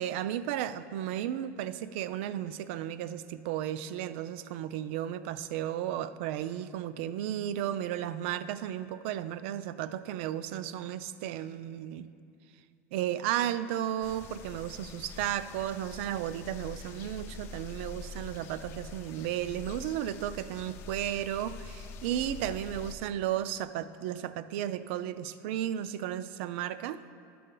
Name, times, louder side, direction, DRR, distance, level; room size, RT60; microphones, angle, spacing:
voice 1, 0.0-12.1 12.9-27.0, right 11 dB, 60° right, 14 dB, 0.3 m, -34 dB
sound 1, 14.0-22.9, left 3 dB, 35° left, 0.4 m, -45 dB
11.5 x 6.7 x 3.8 m, 2.4 s
cardioid pair, 175°, 7 cm